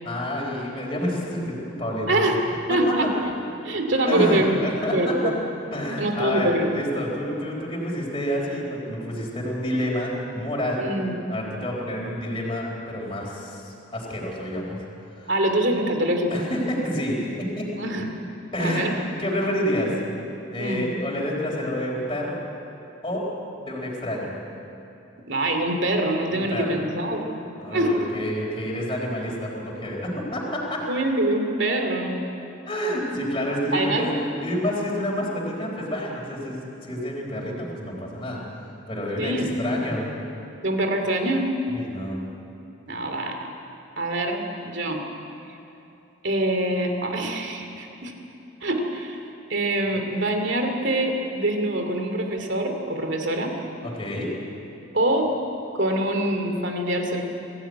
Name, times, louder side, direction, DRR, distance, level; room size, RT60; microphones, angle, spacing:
voice 1, 0.0-2.2 2.7-3.1 4.1-5.3 5.7-10.8 11.3-14.8 15.1-15.3 16.3-17.7 18.5-18.9 19.2-20.0 20.5-22.4 23.0-23.2 23.6-24.3 26.3-26.8 27.6-30.8 32.7-38.4 38.9-40.1 41.7-42.2 53.8-54.3, equal, 25° left, -4 dB, 4.1 m, -28 dB
voice 2, 2.1-2.4 2.7-3.3 3.6-4.5 4.9-5.3 6.0-6.8 10.8-11.1 15.3-16.4 17.7-18.1 18.6-18.9 20.6-20.9 25.3-27.4 27.7-28.0 30.9-32.2 33.7-34.1 39.2-39.6 40.6-41.5 42.9-43.5 44.0-45.0 46.2-48.1 48.6-49.2 49.5-53.5 54.9-55.3 55.7-57.2, right 1 dB, 60° right, 4 dB, 2.6 m, -24 dB
23.0 x 15.5 x 9.3 m, 2.8 s
head